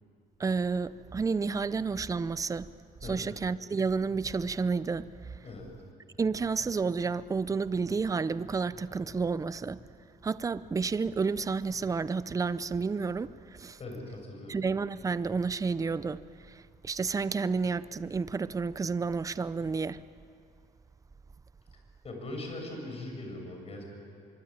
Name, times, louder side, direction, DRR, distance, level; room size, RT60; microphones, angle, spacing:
voice 1, 0.4-2.7 3.0-5.1 6.2-9.8 10.2-13.8 14.5-16.2 16.5-20.0, right 4 dB, 20° right, 0.6 m, -30 dB
voice 2, 13.8-14.6 22.0-23.8, left 2 dB, 35° left, 7.5 m, -40 dB
24.5 x 23.5 x 8.9 m
cardioid pair, 110°, 17 cm